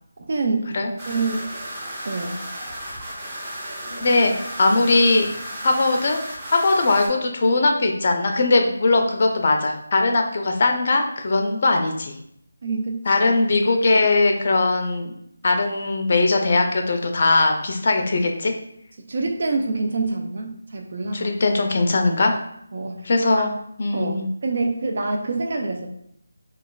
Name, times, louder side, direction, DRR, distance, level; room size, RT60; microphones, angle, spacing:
voice 1, 0.2-0.7 1.1-1.4 2.0-2.4 4.7-4.8 12.6-13.0 19.1-21.3 22.7-23.5 23.9-25.9, right 3 dB, 50° right, 3 dB, 0.4 m, -26 dB
sound 1, 1.0-7.1, equal, 20° right, 1.0 m, -34 dB
voice 2, 3.9-4.3 4.6-5.3 5.6-6.2 6.5-12.1 13.1-15.1 15.4-18.5 21.1-22.4 23.1-23.5 23.8-24.3, left 3 dB, 45° left, 4 dB, 0.4 m, -20 dB
3.0 x 2.3 x 2.2 m, 0.72 s
figure-of-eight pair, 160°, 0 cm